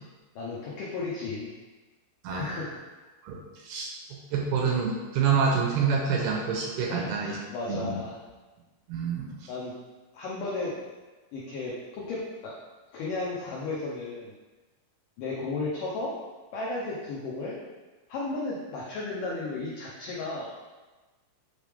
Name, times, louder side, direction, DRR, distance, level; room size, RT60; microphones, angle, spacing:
voice 1, 0.4-1.5 2.3-2.8 6.9-8.2 9.5-9.7 10.1-10.8 11.3-12.5 12.9-14.3 15.2-16.1 16.5-17.6 18.1-20.5, left 3 dB, 85° left, -5 dB, 1.9 m, -34 dB
voice 2, 3.2-7.4 7.7-8.0 8.9-9.5, right 5 dB, 75° right, -1 dB, 2.5 m, -27 dB
8.3 x 3.3 x 3.5 m, 1.2 s
omnidirectional pair, 5.0 m